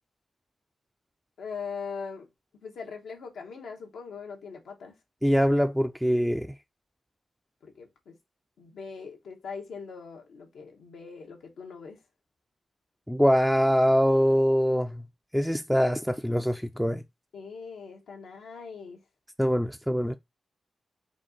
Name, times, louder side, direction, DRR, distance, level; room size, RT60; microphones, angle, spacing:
voice 1, 1.4-2.3 2.6-4.9 7.6-8.2 8.6-12.0 17.3-19.0, left 5 dB, 85° left, 0.9 m, -41 dB
voice 2, 5.2-6.5 13.1-15.0 15.3-17.0 19.4-20.1, equal, ahead, 0.4 m, -23 dB
4.2 x 2.4 x 3.8 m
cardioid pair, 60°, 0 cm